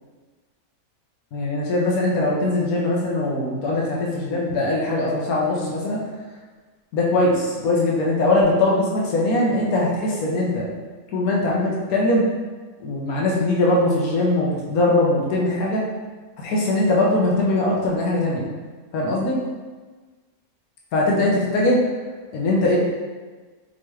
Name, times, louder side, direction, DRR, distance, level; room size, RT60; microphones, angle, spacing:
voice 1, 1.3-6.0 6.9-10.7 11.1-12.2 12.8-15.8 16.4-18.5 18.9-19.4 20.9-21.8 22.3-22.8, left 2 dB, 75° left, -3 dB, 1.2 m, -21 dB
4.3 x 3.1 x 3.0 m, 1.4 s
omnidirectional pair, 1.6 m